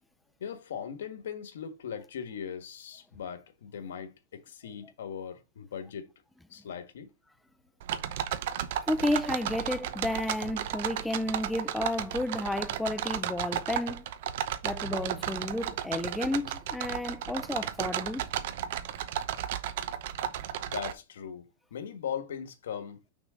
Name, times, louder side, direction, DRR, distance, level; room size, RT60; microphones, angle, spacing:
voice 1, 0.4-6.1 6.5-7.1 20.7-21.4 21.7-23.0, left 8 dB, 90° left, 1.5 m, -39 dB
sound 1, 7.8-20.9, right 10 dB, 65° right, 0.7 m, -34 dB
voice 2, 8.9-14.1 14.6-18.3, left 1 dB, 5° left, 0.3 m, -32 dB
6.2 x 3.9 x 5.0 m
supercardioid pair, 145°, 0 cm